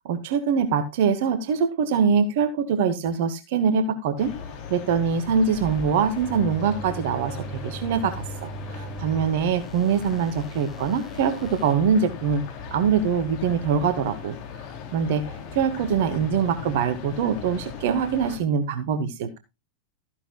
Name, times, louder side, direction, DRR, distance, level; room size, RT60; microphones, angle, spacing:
voice 1, 0.1-4.3 4.7-12.4 12.7-14.3 14.9-15.3 15.5-19.4, right 6 dB, 50° right, 11 dB, 1.5 m, -23 dB
sound 1, 4.2-18.4, left 6 dB, 45° left, 3.4 m, -38 dB
sound 2, 5.5-11.7, right 4 dB, 5° left, 3.1 m, -40 dB
14.0 x 10.5 x 2.4 m, 0.24 s
figure-of-eight pair, 90°, 0 cm